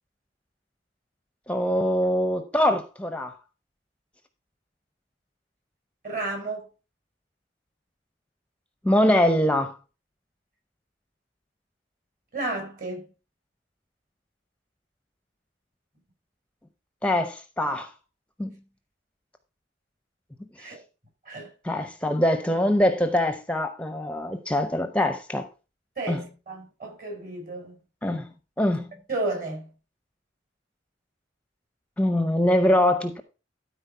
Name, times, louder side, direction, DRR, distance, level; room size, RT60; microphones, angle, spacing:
voice 1, 1.5-3.3 8.8-9.8 17.0-17.9 18.4-18.5 21.6-25.5 26.1-26.2 28.0-28.3 28.6-28.9 32.0-33.2, left 1 dB, 5° left, 0.7 m, -23 dB
voice 2, 6.0-6.7 12.3-13.0 20.6-20.8 21.2-21.5 26.0-27.8 29.1-29.7, right 2 dB, 45° right, 4.8 m, -32 dB
13.0 x 4.4 x 5.5 m
head